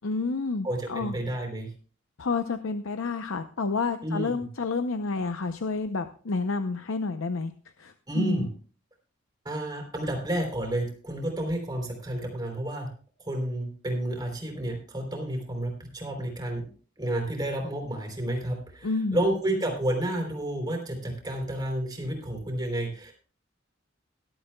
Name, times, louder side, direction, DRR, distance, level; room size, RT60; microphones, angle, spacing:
voice 1, 0.0-1.1 2.2-7.5 7.8-8.5 18.8-19.2, left 3 dB, 80° left, 8 dB, 0.7 m, -29 dB
voice 2, 0.6-1.7 4.0-4.3 8.1-8.5 9.4-12.9 13.2-16.7 17.0-23.1, right 1 dB, 20° right, 2 dB, 3.4 m, -30 dB
18.5 x 12.0 x 2.3 m, 0.42 s
head